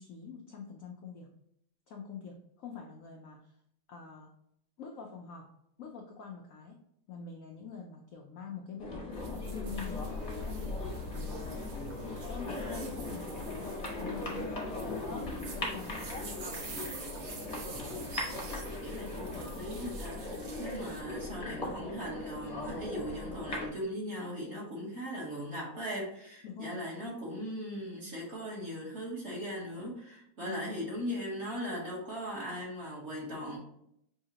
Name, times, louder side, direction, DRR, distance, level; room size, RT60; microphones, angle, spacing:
voice 1, 0.0-1.3 1.9-3.5 3.9-4.3 4.8-5.5 5.8-6.8 7.1-10.1 10.4-11.6 12.0-15.9 26.4-26.8 30.4-30.6, left 5 dB, 75° left, 1 dB, 0.7 m, -45 dB
sound 1, 8.8-23.7, left 2 dB, 35° left, 0.7 m, -39 dB
sound 2, 9.1-21.0, right 4 dB, 60° right, 1.1 m, -48 dB
sound 3, 9.7-20.2, equal, 75° right, 0.6 m, -50 dB
voice 2, 18.8-33.6, equal, 40° right, -4 dB, 1.3 m, -39 dB
5.7 x 2.8 x 2.9 m, 0.74 s
omnidirectional pair, 2.1 m